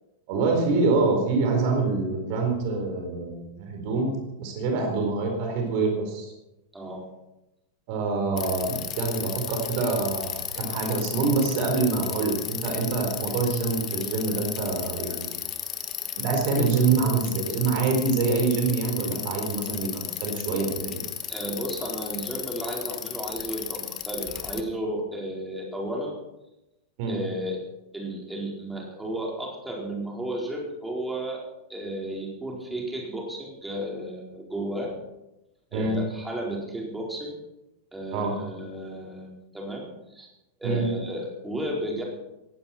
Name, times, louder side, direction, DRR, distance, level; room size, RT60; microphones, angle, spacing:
voice 1, 0.3-4.1 4.4-6.3 7.9-15.4 16.2-21.0 27.0-27.2 35.7-36.0 38.1-38.3 40.6-40.8, right 4 dB, 45° right, 3 dB, 4.4 m, -25 dB
voice 2, 6.7-7.0 21.3-26.2 27.0-27.6 27.9-31.4 31.7-34.9 35.7-37.4 37.9-40.3 40.6-42.0, right 1 dB, 5° right, -2 dB, 4.6 m, -33 dB
Bicycle, 8.4-24.6, left 11 dB, 30° left, 1.4 m, -34 dB
18.0 x 16.0 x 4.5 m, 0.93 s
figure-of-eight pair, 90°, 0 cm